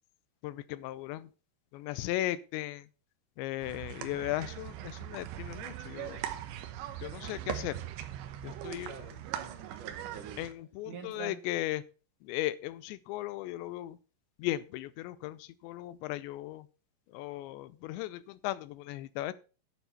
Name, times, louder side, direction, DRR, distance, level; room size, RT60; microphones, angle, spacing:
voice 1, 0.4-1.3 1.7-2.9 3.4-6.2 7.0-7.8 8.4-8.9 10.4-11.8 12.2-14.0 14.4-16.7 17.1-19.3, left 15 dB, 90° left, 17 dB, 3.0 m, -37 dB
sound 1, 3.6-10.5, right 12 dB, 90° right, 3.4 m, -40 dB
voice 2, 8.9-10.5 10.9-11.4, right 6 dB, 60° right, 4 dB, 2.6 m, -46 dB
9.9 x 7.0 x 5.8 m, 0.34 s
omnidirectional pair, 5.0 m